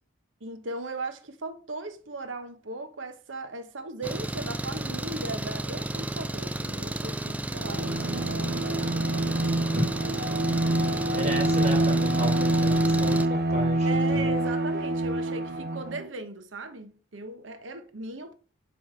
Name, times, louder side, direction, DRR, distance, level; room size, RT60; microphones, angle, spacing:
voice 1, 0.4-9.4 13.8-18.3, right 3 dB, 80° right, 1.0 m, -38 dB
Engine, 4.0-13.3, right 1 dB, 10° right, 0.3 m, -32 dB
Bowed string instrument, 7.6-16.1, right 1 dB, 50° right, 0.8 m, -26 dB
voice 2, 11.1-14.3, equal, 35° right, 2.3 m, -34 dB
8.0 x 3.3 x 5.7 m
head